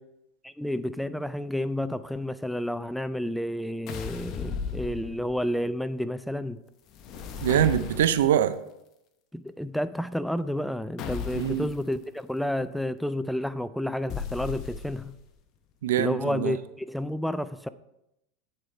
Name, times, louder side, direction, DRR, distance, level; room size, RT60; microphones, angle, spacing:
voice 1, 0.4-6.6 9.3-15.2 16.0-17.7, left 1 dB, ahead, 0.3 m, -30 dB
sound 1, 3.9-5.5 6.9-8.4 11.0-11.8 14.1-15.2, left 6 dB, 45° left, 0.8 m, -36 dB
voice 2, 7.4-8.6 11.4-11.7 15.8-16.5, right 10 dB, 75° right, 0.4 m, -23 dB
8.7 x 4.8 x 4.2 m
hypercardioid pair, 90°, 0 cm